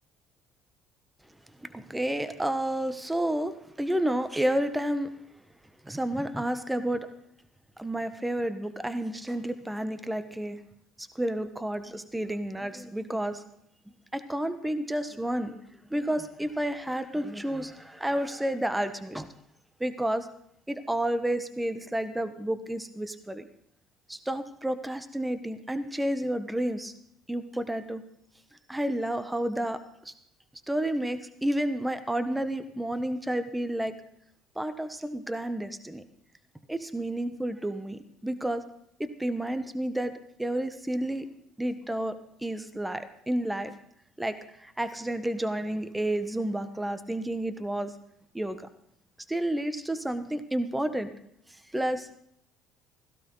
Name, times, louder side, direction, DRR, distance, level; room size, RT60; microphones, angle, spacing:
voice 1, 1.7-5.1 5.8-7.1 7.8-10.6 11.0-13.4 14.1-15.6 15.9-19.3 19.8-20.3 20.7-23.4 24.1-26.9 27.3-28.0 28.7-30.1 30.7-33.9 34.6-36.0 36.7-38.6 39.0-40.1 40.4-41.3 41.6-43.7 44.2-44.4 44.6-47.9 48.3-48.6 49.3-51.1 51.7-52.1, right 1 dB, 10° right, 11 dB, 1.3 m, -30 dB
16.5 x 15.5 x 4.0 m, 0.69 s
hypercardioid pair, 60°, 0 cm